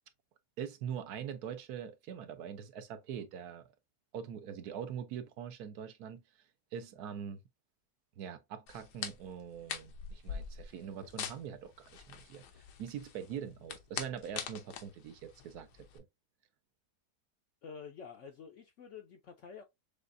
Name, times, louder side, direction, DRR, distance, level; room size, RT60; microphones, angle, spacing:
voice 1, 0.6-3.7 4.1-6.2 6.7-7.4 8.2-15.7 15.9-16.0, right 8 dB, 75° right, 1.2 m, -43 dB
sound 1, 8.7-16.0, left 7 dB, 85° left, 1.3 m, -44 dB
voice 2, 17.6-19.6, left 6 dB, 65° left, 0.7 m, -49 dB
6.7 x 2.4 x 2.5 m
omnidirectional pair, 1.7 m